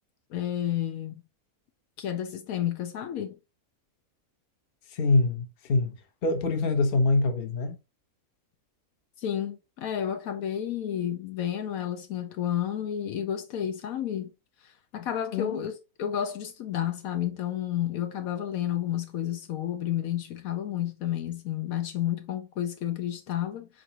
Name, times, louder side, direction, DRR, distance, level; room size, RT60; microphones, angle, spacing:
voice 1, 0.3-1.2 2.0-3.3 9.2-14.3 14.6-23.7, left 10 dB, 75° left, 1.1 m, -31 dB
voice 2, 4.9-6.0 6.2-7.8 15.3-15.6, left 3 dB, 45° left, 0.9 m, -25 dB
4.6 x 3.9 x 2.7 m
omnidirectional pair, 1.5 m